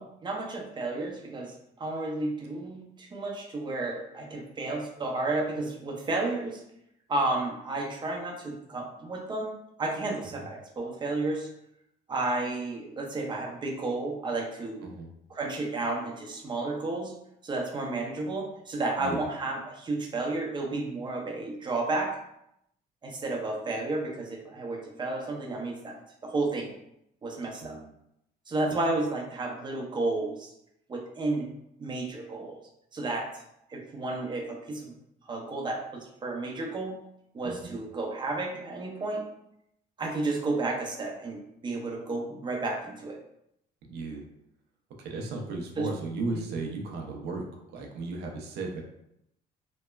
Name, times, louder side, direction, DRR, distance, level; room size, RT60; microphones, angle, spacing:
voice 1, 0.0-6.6 7.1-9.5 9.8-11.5 12.1-14.8 15.3-17.1 17.4-22.2 23.0-26.7 27.2-27.8 28.5-30.5 30.9-31.5 31.8-32.6 32.9-33.4 33.7-34.9 35.3-37.0 37.3-39.2 40.0-43.2 45.8-45.9 46.3-46.4, right 2 dB, 25° right, 0 dB, 0.6 m, -32 dB
voice 2, 27.6-27.9 28.7-28.8 37.4-37.7 43.8-44.2 45.0-48.8, right 3 dB, 75° right, 1 dB, 0.6 m, -35 dB
3.0 x 2.1 x 2.2 m, 0.78 s
cardioid pair, 110°, 17 cm